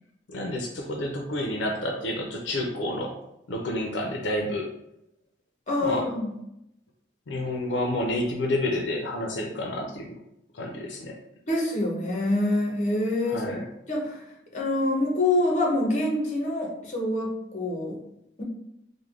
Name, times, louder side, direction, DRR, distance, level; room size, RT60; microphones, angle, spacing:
voice 1, 0.3-3.2 3.5-4.7 5.8-6.1 7.3-10.2 10.5-11.2 13.3-13.7, left 1 dB, 80° left, 1 dB, 0.5 m, -29 dB
voice 2, 5.7-6.3 11.5-13.4 13.9-14.2 14.5-18.0, left 1 dB, 40° left, -1 dB, 0.8 m, -26 dB
3.2 x 2.1 x 3.6 m, 0.81 s
head